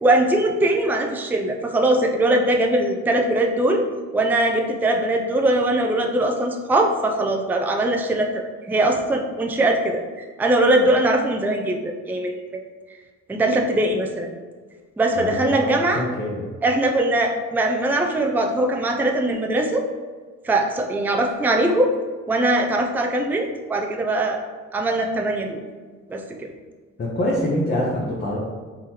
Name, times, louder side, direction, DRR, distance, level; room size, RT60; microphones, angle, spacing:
voice 1, 0.0-3.9 4.1-12.4 13.3-14.3 15.0-16.0 16.6-19.9 20.4-21.9 22.3-24.4 24.7-25.6 26.1-26.5, right 1 dB, 5° right, 2 dB, 0.4 m, -21 dB
voice 2, 15.2-16.4 27.0-28.4, left 1 dB, 35° left, -4 dB, 0.9 m, -25 dB
3.8 x 3.0 x 4.4 m, 1.5 s
cardioid pair, 90°, 30 cm